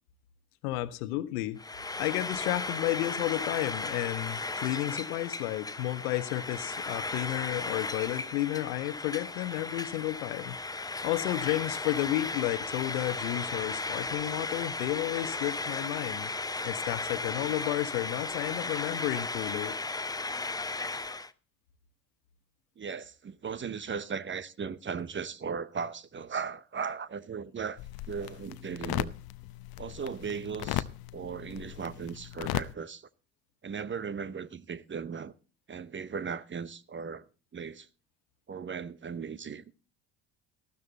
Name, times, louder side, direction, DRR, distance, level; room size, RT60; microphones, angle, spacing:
voice 1, 0.6-1.6 2.0-10.6 11.0-16.3 16.6-19.7, left 16 dB, 80° left, 1.1 m, -32 dB
Frying (food), 1.6-21.3, left 3 dB, 10° left, 0.7 m, -35 dB
voice 2, 22.8-27.8 28.1-29.1 29.8-30.9 31.1-33.1 33.6-35.3 35.7-37.3 37.5-37.9 38.5-39.6, right 6 dB, 25° right, 0.8 m, -37 dB
sound 1, 27.8-32.7, left 15 dB, 55° left, 0.8 m, -37 dB
13.5 x 12.5 x 3.9 m
hypercardioid pair, 65°, 43 cm